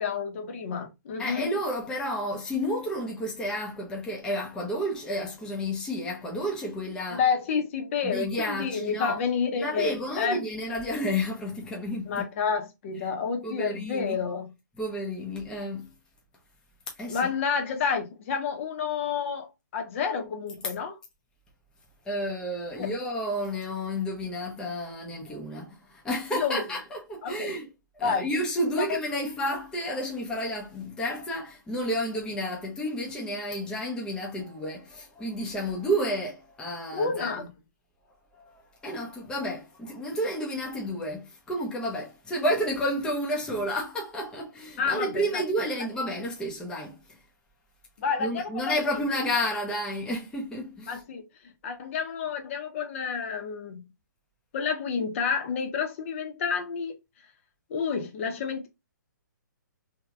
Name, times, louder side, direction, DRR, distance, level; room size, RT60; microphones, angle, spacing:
voice 1, 0.0-1.5 7.1-10.4 12.0-14.5 17.1-21.0 22.8-22.9 26.3-26.6 27.2-27.5 28.0-28.3 28.8-29.2 36.9-37.5 44.8-45.4 48.0-48.8 50.9-51.2 51.6-53.8 54.5-56.9 57.7-58.7, left 6 dB, 40° left, 0.8 m, -29 dB
voice 2, 1.2-7.2 8.0-9.2 9.6-12.3 13.4-14.2 14.8-15.9 17.0-17.3 22.0-27.7 28.0-37.4 38.4-47.2 48.2-51.0, equal, 10° left, 0.7 m, -31 dB
2.9 x 2.8 x 2.3 m
hypercardioid pair, 150°, 10 cm